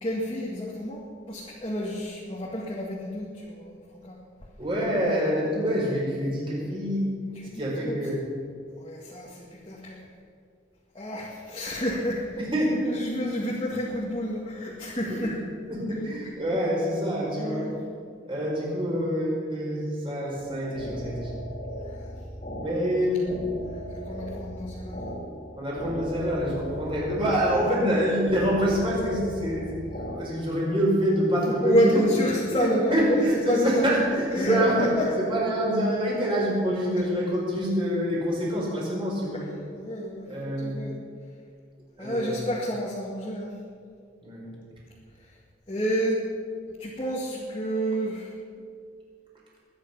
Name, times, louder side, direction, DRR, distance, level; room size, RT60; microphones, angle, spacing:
voice 1, 0.0-1.0 1.3-3.8 4.0-4.2 7.3-8.0 8.8-10.0 10.9-12.5 12.8-15.4 17.4-17.7 21.7-22.1 23.7-25.2 31.5-35.1 39.3-39.4 39.7-40.3 40.6-40.9 42.0-43.5 45.2-45.3 45.7-46.2 46.8-48.3, equal, 25° left, -4 dB, 2.0 m, -29 dB
voice 2, 4.6-7.1 7.5-8.3 12.4-12.8 15.1-15.3 15.7-17.7 18.2-21.4 22.6-23.4 25.6-32.2 32.9-34.9 35.2-39.4 40.3-40.8 42.0-42.4 44.2-44.5, equal, 25° right, -4 dB, 4.9 m, -26 dB
sound 1, 20.4-30.2, equal, 45° left, 3.0 m, -38 dB
21.5 x 9.7 x 5.8 m, 2.2 s
head